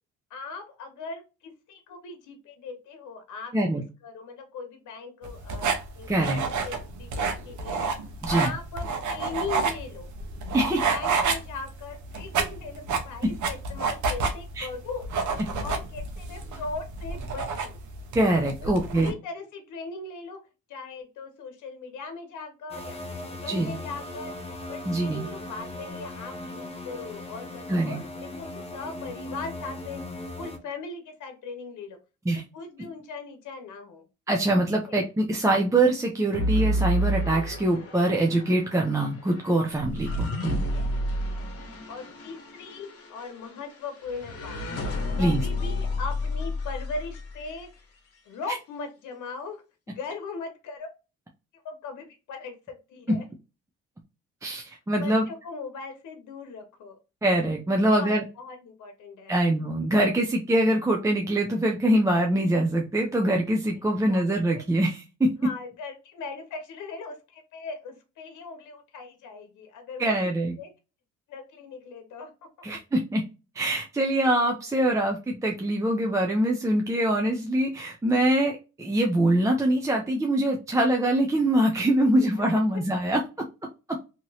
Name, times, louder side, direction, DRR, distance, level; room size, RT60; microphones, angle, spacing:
voice 1, 0.3-7.8 8.3-10.1 10.9-15.1 15.6-17.8 18.6-20.4 20.7-24.3 24.7-30.0 30.4-32.0 32.3-34.0 34.9-35.0 40.1-40.2 40.7-41.4 41.9-44.6 45.2-47.7 48.3-49.6 49.9-50.9 51.6-53.2 55.0-57.0 57.8-58.1 58.4-59.3 63.9-64.2 65.4-70.1 70.6-70.7 71.3-72.3, left 4 dB, 80° left, 6 dB, 0.9 m, -39 dB
sound 1, 5.2-19.1, right 4 dB, 75° right, 0.8 m, -29 dB
voice 2, 6.1-6.4 8.2-8.5 10.5-10.8 13.2-13.3 14.6-14.7 18.1-19.1 23.5-23.7 24.9-25.3 27.7-28.0 32.3-32.4 34.3-40.7 45.2-45.4 53.1-53.2 54.4-55.3 57.2-58.2 59.3-65.3 70.0-70.6 72.6-73.2 73.5-83.2 83.9-84.0, right 1 dB, 10° right, 0 dB, 0.5 m, -24 dB
sound 2, 22.7-30.6, left 2 dB, 20° left, 0.8 m, -38 dB
sound 3, 36.3-47.6, equal, 50° left, 1.1 m, -31 dB
2.9 x 2.9 x 2.7 m, 0.29 s
cardioid pair, 90°, 30 cm